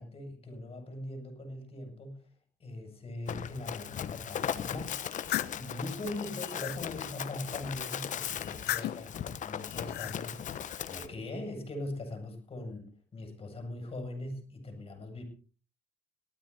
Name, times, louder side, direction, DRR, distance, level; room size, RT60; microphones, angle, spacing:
voice 1, 0.0-2.3 2.6-5.0 5.5-9.2 9.4-10.4 10.8-15.2, left 2 dB, 35° left, 4 dB, 7.5 m, -41 dB
Run, 3.3-11.1, left 9 dB, 50° left, 1.1 m, -38 dB
sound 1, 4.9-5.6 6.2-6.8 8.4-9.1 9.7-10.2, left 15 dB, 75° left, 1.0 m, -36 dB
18.5 x 13.5 x 4.3 m, 0.37 s
cardioid pair, 110°, 17 cm